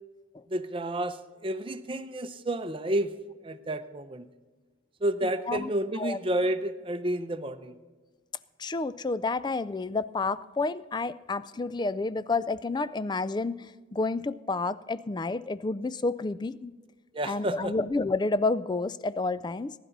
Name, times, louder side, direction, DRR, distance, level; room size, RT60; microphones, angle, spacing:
voice 1, 0.5-1.2 1.4-3.1 3.4-4.3 5.0-7.7 17.1-17.7, right 1 dB, 25° right, 9 dB, 0.7 m, -30 dB
voice 2, 5.2-6.2 8.6-16.7 17.2-19.7, left 3 dB, 20° left, 16 dB, 0.3 m, -30 dB
21.5 x 11.0 x 4.0 m, 1.3 s
head